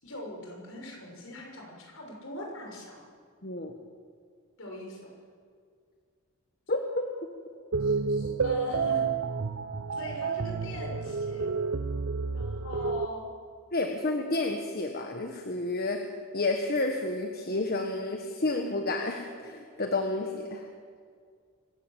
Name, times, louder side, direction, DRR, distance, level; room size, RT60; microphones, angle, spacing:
voice 1, 0.0-3.0 4.6-5.0 7.8-9.1 10.0-11.6 12.3-13.3, left 1 dB, 65° left, 0 dB, 6.3 m, -41 dB
voice 2, 3.4-3.7 6.7-7.1 13.7-16.0 16.3-20.6, left 2 dB, 45° left, 4 dB, 1.5 m, -30 dB
sound 1, 7.7-13.1, right 4 dB, 65° right, 0.7 m, -30 dB
25.5 x 16.0 x 7.6 m, 2.1 s
head